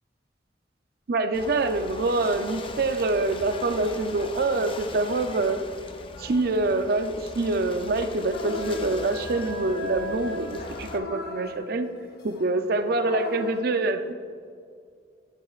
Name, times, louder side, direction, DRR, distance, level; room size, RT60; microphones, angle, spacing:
voice 1, 1.1-5.6 6.2-11.9 12.2-14.1, right 2 dB, 50° right, 8 dB, 0.4 m, -25 dB
Ocean / Boat Water vehicle, 1.3-11.0, left 3 dB, 30° left, 0.4 m, -41 dB
sound 1, 8.3-13.6, left 2 dB, 55° left, 1.0 m, -37 dB
10.5 x 8.6 x 2.4 m, 2.2 s
head